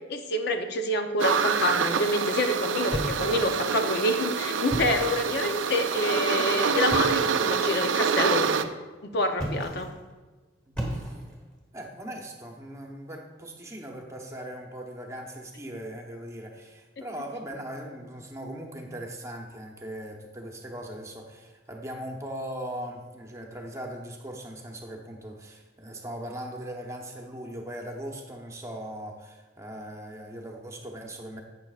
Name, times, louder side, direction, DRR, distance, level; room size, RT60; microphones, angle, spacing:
voice 1, 0.0-8.7 9.1-9.9, left 1 dB, 55° left, 5 dB, 0.7 m, -27 dB
sound 1, 1.2-8.6, right 6 dB, 75° right, 0.5 m, -26 dB
sound 2, 2.9-3.7 4.6-5.3 6.9-7.3 9.3-10.0 10.7-11.5, right 1 dB, 5° left, 1.5 m, -34 dB
voice 2, 10.7-11.2 11.7-31.4, right 1 dB, 15° right, 1 dB, 0.9 m, -39 dB
11.5 x 8.3 x 2.4 m, 1.3 s
head